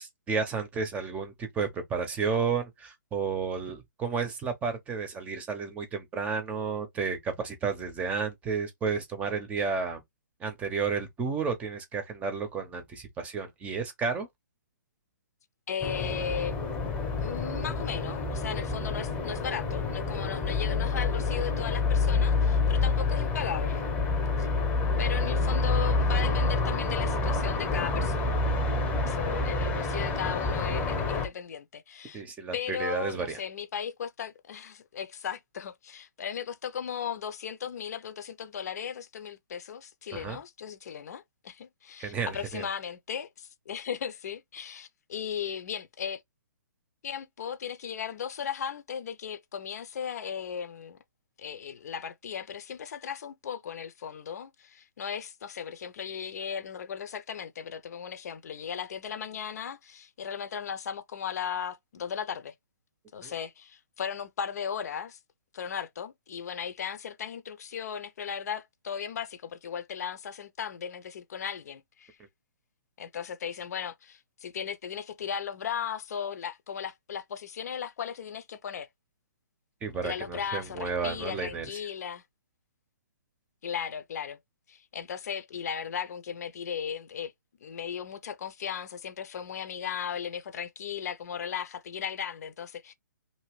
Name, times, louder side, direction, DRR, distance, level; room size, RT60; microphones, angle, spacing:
voice 1, 0.0-10.0 10.4-14.3 24.4-24.5 32.1-33.4 40.1-40.4 42.0-42.7 63.2-63.3 79.8-81.8, right 5 dB, 15° right, 0.8 m, -32 dB
voice 2, 15.7-16.5 17.2-23.9 25.0-28.4 29.0-32.2 32.5-46.2 47.0-51.0 51.4-62.5 63.1-65.2 65.5-72.2 73.0-78.9 80.0-82.2 83.6-84.4 84.7-87.3 87.6-92.9, left 8 dB, 55° left, 0.7 m, -36 dB
sound 1, 15.8-31.3, left 3 dB, 15° left, 1.0 m, -28 dB
2.9 x 2.7 x 3.1 m
hypercardioid pair, 145°, 10 cm